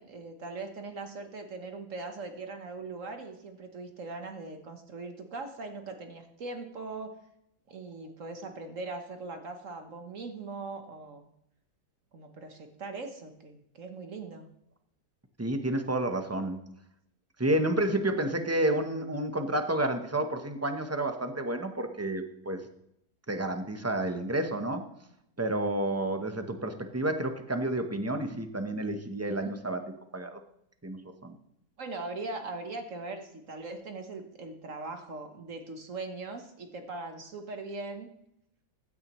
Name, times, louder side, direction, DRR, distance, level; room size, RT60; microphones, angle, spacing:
voice 1, 0.0-7.1 7.7-11.3 12.1-14.5 29.3-29.5 31.8-38.1, right 3 dB, 55° right, 5 dB, 1.4 m, -40 dB
voice 2, 15.4-16.6 17.4-22.6 23.3-24.9 25.4-29.8 30.1-30.4 30.8-31.4, right 1 dB, 15° right, 7 dB, 0.5 m, -30 dB
15.5 x 9.7 x 3.1 m, 0.77 s
omnidirectional pair, 1.8 m